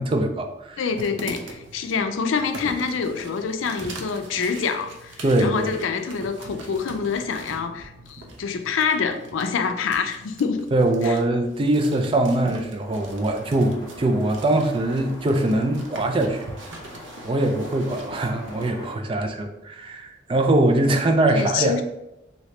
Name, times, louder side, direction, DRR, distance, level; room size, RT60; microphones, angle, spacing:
voice 1, 0.0-0.8 5.2-5.7 10.7-16.5 17.2-21.8, right 1 dB, 25° right, 5 dB, 0.3 m, -22 dB
voice 2, 0.8-10.7 11.0-11.2 21.3-21.8, left 5 dB, 90° left, 7 dB, 0.4 m, -26 dB
sound 1, 0.9-18.7, right 2 dB, 75° right, 0.5 m, -42 dB
sound 2, 12.8-19.0, left 1 dB, 20° left, 0.6 m, -43 dB
3.2 x 2.7 x 2.9 m, 0.90 s
head